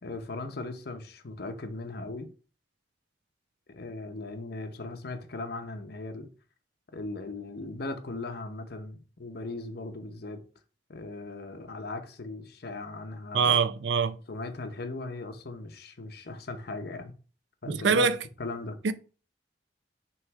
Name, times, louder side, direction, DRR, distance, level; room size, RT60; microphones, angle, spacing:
voice 1, 0.0-2.3 3.7-6.3 6.9-10.4 10.9-13.6 14.3-17.1 17.6-18.1 18.4-18.8, left 2 dB, 60° left, 0.8 m, -38 dB
voice 2, 13.3-14.2 17.7-18.2 18.8-18.9, right 5 dB, 80° right, 0.5 m, -24 dB
6.4 x 3.1 x 4.7 m
head